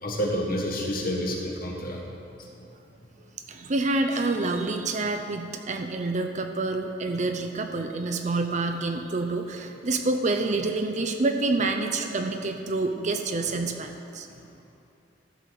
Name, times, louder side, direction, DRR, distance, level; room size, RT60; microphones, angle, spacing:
voice 1, 0.0-2.1 2.4-2.5, equal, 55° left, 0 dB, 1.5 m, -29 dB
voice 2, 3.5-14.3, right 2 dB, 40° right, 5 dB, 0.6 m, -27 dB
13.0 x 4.7 x 6.9 m, 2.7 s
head